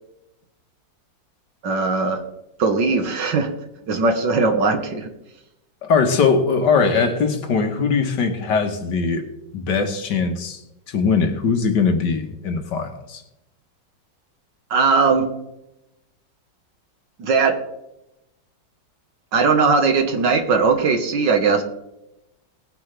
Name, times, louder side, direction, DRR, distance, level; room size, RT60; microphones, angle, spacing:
voice 1, 1.6-2.2 2.6-3.5 3.9-5.1 14.7-15.3 17.2-17.6 19.3-21.6, right 4 dB, 70° right, 6 dB, 2.0 m, -19 dB
voice 2, 5.8-9.3 9.5-10.6 10.9-13.2, left 5 dB, 65° left, 6 dB, 1.9 m, -20 dB
19.0 x 9.6 x 3.4 m, 0.90 s
omnidirectional pair, 2.1 m